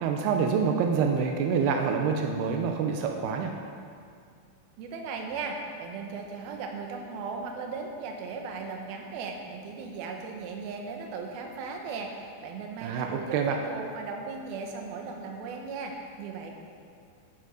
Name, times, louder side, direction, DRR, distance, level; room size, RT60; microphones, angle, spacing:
voice 1, 0.0-3.5 12.8-13.6, right 6 dB, 90° right, 3 dB, 2.7 m, -26 dB
voice 2, 4.8-16.5, right 4 dB, 70° right, 2 dB, 2.9 m, -37 dB
11.0 x 9.9 x 5.3 m, 2.2 s
omnidirectional pair, 4.7 m